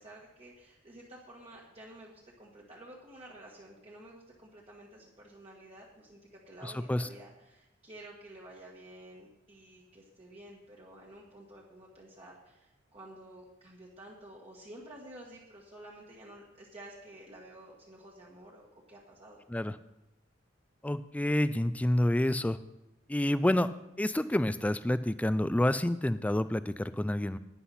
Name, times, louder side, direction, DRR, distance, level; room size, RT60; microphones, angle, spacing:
voice 1, 0.0-19.4, right 1 dB, 35° right, -4 dB, 1.5 m, -51 dB
voice 2, 6.6-7.1 19.5-19.8 20.8-22.6 23.1-23.7 24.0-27.4, left 1 dB, 10° left, 14 dB, 0.3 m, -28 dB
11.5 x 9.6 x 4.2 m, 0.93 s
head